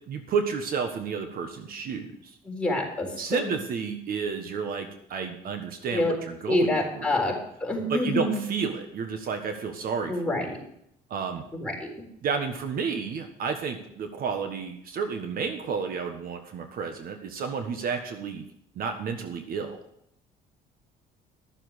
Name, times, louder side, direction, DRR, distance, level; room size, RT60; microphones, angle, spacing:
voice 1, 0.1-2.3 3.2-7.2 7.9-10.5 11.1-11.4 12.2-18.5 18.7-19.8, right 5 dB, 60° right, 6 dB, 1.5 m, -31 dB
voice 2, 2.5-3.5 5.9-6.2 6.5-7.3 7.6-8.4 10.1-10.6 11.5-11.7, left 1 dB, 5° left, -2 dB, 4.0 m, -27 dB
12.5 x 7.2 x 6.4 m, 0.74 s
cardioid pair, 110°, 17 cm